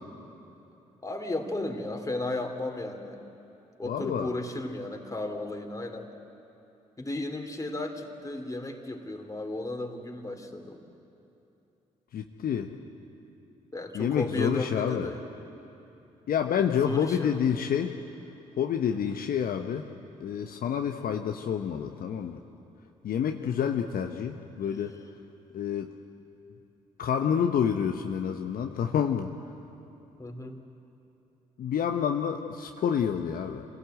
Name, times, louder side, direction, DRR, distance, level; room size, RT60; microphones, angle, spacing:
voice 1, 1.0-3.2 3.8-6.1 7.0-10.8 13.7-15.2 16.8-17.4 19.1-19.2 23.4-23.7 30.2-30.6, left 2 dB, 20° left, 4 dB, 3.2 m, -34 dB
voice 2, 3.8-4.3 12.1-12.7 13.9-15.1 16.3-18.0 18.6-19.9 20.2-22.4 23.0-24.9 25.5-25.9 27.0-29.3 31.6-33.6, left 8 dB, 55° left, 4 dB, 1.1 m, -28 dB
26.5 x 17.5 x 8.0 m, 3.0 s
hypercardioid pair, 40°, 17 cm